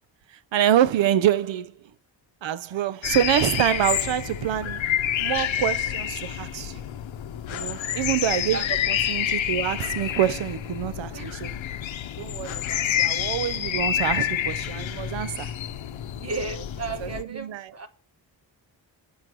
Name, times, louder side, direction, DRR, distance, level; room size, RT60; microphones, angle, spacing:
voice 1, 0.3-1.9 2.4-4.8 5.2-6.8 7.5-11.6 12.2-15.5 17.0-17.7, right 11 dB, 75° right, 0.7 m, -26 dB
sound 1, 3.0-17.2, left 10 dB, 75° left, 0.8 m, -28 dB
voice 2, 7.5-8.0 8.5-8.7 11.1-11.4 16.1-17.9, right 3 dB, 35° right, 1.2 m, -35 dB
8.5 x 7.5 x 6.0 m
wide cardioid pair, 165°, 46 cm